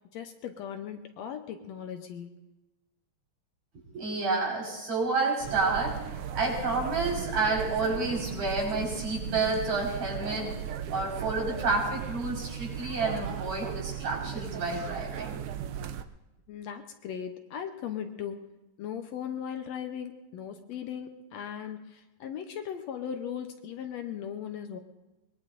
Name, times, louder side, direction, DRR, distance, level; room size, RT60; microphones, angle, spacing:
voice 1, 0.1-2.4 16.5-18.5 18.8-24.8, left 8 dB, 70° left, 6 dB, 1.9 m, -38 dB
voice 2, 3.9-10.5 10.9-15.4, right 3 dB, 65° right, -4 dB, 6.4 m, -30 dB
sound 1, 5.4-16.0, right 9 dB, 80° right, 1.2 m, -36 dB
23.5 x 21.0 x 2.6 m, 1.0 s
omnidirectional pair, 3.4 m